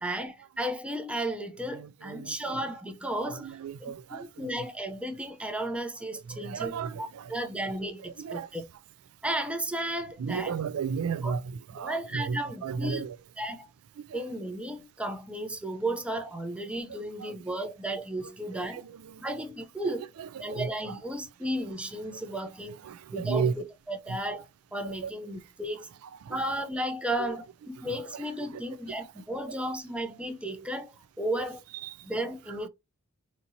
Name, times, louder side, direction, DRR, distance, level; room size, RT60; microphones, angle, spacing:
voice 1, 0.0-3.5 3.8-8.6 9.2-10.6 11.2-11.4 11.7-13.0 13.4-13.7 14.1-18.8 19.2-20.1 20.4-22.8 23.1-25.9 26.3-31.6 32.0-32.7, right 1 dB, 5° right, 0.5 m, -34 dB
voice 2, 1.7-2.6 3.2-4.6 6.3-7.3 8.2-8.5 10.2-13.2 14.0-14.3 16.9-17.3 18.7-19.2 19.9-21.0 22.1-22.2 22.8-23.5 24.8-25.1 26.2-26.4 27.2-27.3 27.8-28.2 28.5-28.6 29.3-29.6 31.8-32.1, right 6 dB, 85° right, 0.4 m, -35 dB
4.2 x 2.7 x 2.7 m
head